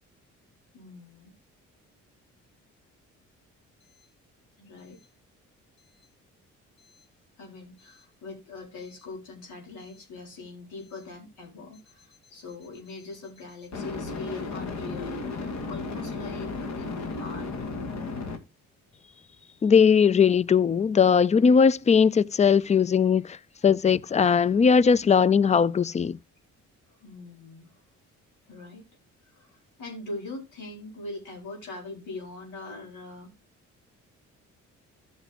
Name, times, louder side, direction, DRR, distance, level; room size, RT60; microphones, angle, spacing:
voice 1, 0.7-1.3 4.6-5.0 7.4-17.5 27.0-27.7 28.5-28.8 29.3-33.3, left 3 dB, 80° left, 4.8 m, -42 dB
sound 1, 8.8-9.0 13.7-18.4, left 3 dB, 65° left, 2.3 m, -34 dB
voice 2, 19.6-23.4 23.6-26.2, left 6 dB, 25° left, 0.4 m, -19 dB
14.0 x 6.3 x 2.9 m
cardioid pair, 90°, 30 cm